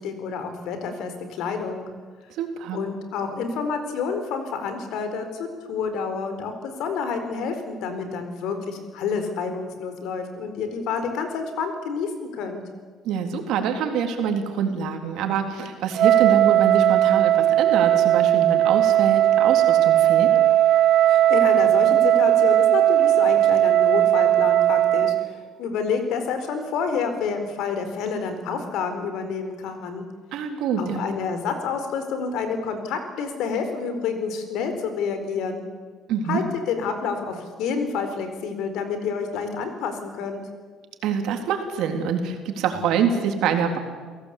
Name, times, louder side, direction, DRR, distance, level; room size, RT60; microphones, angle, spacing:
voice 1, 0.0-1.8 2.7-12.6 21.1-30.0 30.8-35.6 36.3-40.4, left 5 dB, 70° left, 8 dB, 4.4 m, -29 dB
voice 2, 2.4-2.8 13.0-20.3 30.3-31.1 36.1-36.4 41.0-43.8, right 7 dB, 70° right, 4 dB, 3.7 m, -25 dB
Wind instrument woodwind instrument, 16.0-25.3, right 12 dB, 55° right, 0.7 m, -18 dB
29.0 x 17.5 x 8.5 m, 1.5 s
cardioid pair, 110°, 0 cm